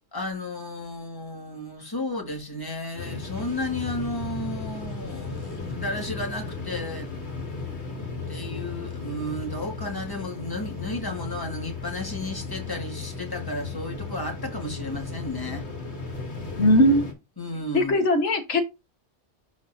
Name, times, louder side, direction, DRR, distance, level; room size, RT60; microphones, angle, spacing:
voice 1, 0.1-7.1 8.3-15.7 17.4-18.1, left 1 dB, 20° left, 1.9 m, -33 dB
sound 1, 3.0-17.1, left 4 dB, 70° left, 2.6 m, -35 dB
voice 2, 16.6-17.0 17.7-18.6, left 1 dB, 85° left, 1.7 m, -19 dB
11.5 x 4.1 x 2.6 m
omnidirectional pair, 1.2 m